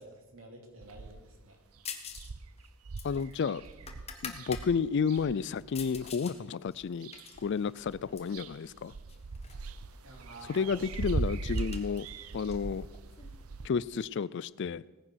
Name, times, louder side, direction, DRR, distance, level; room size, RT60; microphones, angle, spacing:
voice 1, 0.0-1.6 10.0-10.9, right 2 dB, 70° right, 3.1 m, -50 dB
sound 1, 0.8-1.4 1.8-1.9 2.1-6.1 6.7-7.5 7.8-13.7, right 3 dB, 85° right, 0.7 m, -39 dB
sound 2, 1.9-2.3 2.6-4.7 5.1-6.4 6.7-8.4 9.1-9.7 9.9-10.0 10.3-13.4, left 6 dB, 30° left, 1.3 m, -46 dB
voice 2, 3.0-3.6 4.2-7.1 7.4-8.9 10.5-12.1 12.3-12.9 13.6-14.8, left 6 dB, 55° left, 0.4 m, -31 dB
17.5 x 10.0 x 6.4 m
head